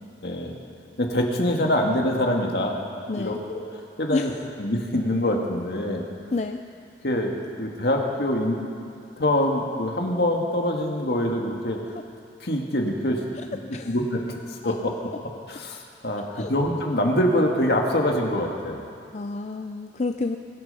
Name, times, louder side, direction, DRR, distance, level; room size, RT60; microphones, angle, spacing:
voice 1, 0.2-0.5 1.0-2.8 3.1-3.6 4.0-4.3 4.6-6.0 7.0-8.6 9.2-11.8 12.4-13.2 13.9-14.2 14.5-15.1 15.5-18.8, left 1 dB, 70° left, 1 dB, 1.9 m, -24 dB
voice 2, 3.1-3.4 4.1-4.4 6.3-6.6 13.4-13.5 13.7-13.9 14.6-14.7 16.3-16.5 19.1-20.4, left 3 dB, 40° left, 6 dB, 0.4 m, -29 dB
22.5 x 10.5 x 5.6 m, 2.4 s
head